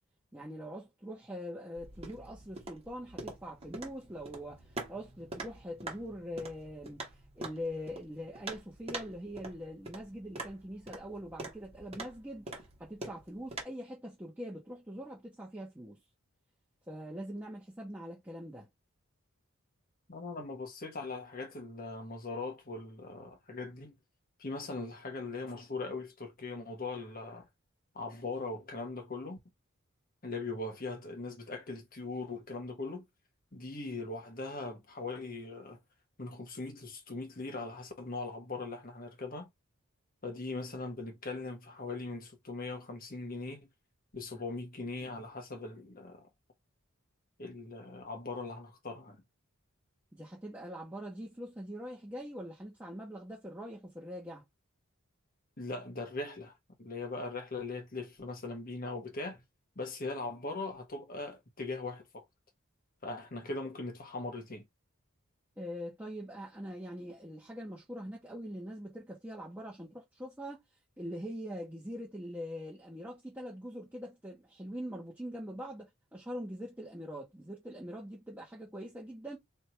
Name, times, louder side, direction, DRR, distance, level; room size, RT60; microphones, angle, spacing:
voice 1, 0.3-16.0 16.9-18.7 50.1-54.4 65.6-70.6 71.0-79.4, equal, 10° right, 1.1 m, -43 dB
sound 1, 1.8-13.6, right 2 dB, 30° right, 1.4 m, -45 dB
voice 2, 20.1-24.0 24.4-27.5 27.9-29.4 30.2-33.1 33.5-35.8 36.2-39.5 40.2-43.7 44.1-46.3 47.4-49.2 55.6-59.4 59.7-62.2 63.0-64.7, left 3 dB, 40° left, 1.3 m, -40 dB
3.3 x 2.8 x 4.4 m
head